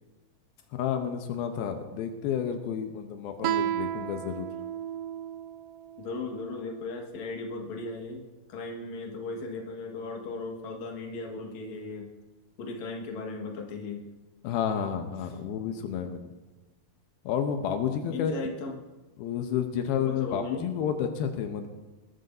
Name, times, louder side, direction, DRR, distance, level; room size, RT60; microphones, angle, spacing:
voice 1, 0.8-4.5 14.4-16.3 17.3-18.3 19.2-21.7, left 8 dB, 85° left, 5 dB, 2.7 m, -30 dB
Guitar, 3.4-6.7, right 11 dB, 80° right, 2.1 m, -33 dB
voice 2, 6.0-8.2 8.5-12.1 12.6-14.1 18.1-18.8 20.0-20.6, left 3 dB, 55° left, 1 dB, 2.7 m, -37 dB
22.0 x 13.0 x 2.7 m, 1.2 s
omnidirectional pair, 4.3 m